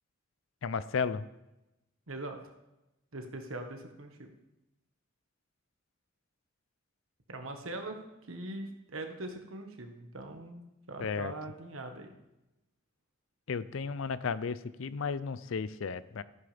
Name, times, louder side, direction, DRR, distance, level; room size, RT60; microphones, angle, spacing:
voice 1, 0.6-1.3 11.0-11.3 13.5-16.2, left 5 dB, 70° left, 16 dB, 0.5 m, -34 dB
voice 2, 2.1-2.4 3.1-4.3 7.3-10.6 10.9-12.1, right 2 dB, 80° right, 4 dB, 1.4 m, -41 dB
13.5 x 10.5 x 3.4 m, 0.96 s
head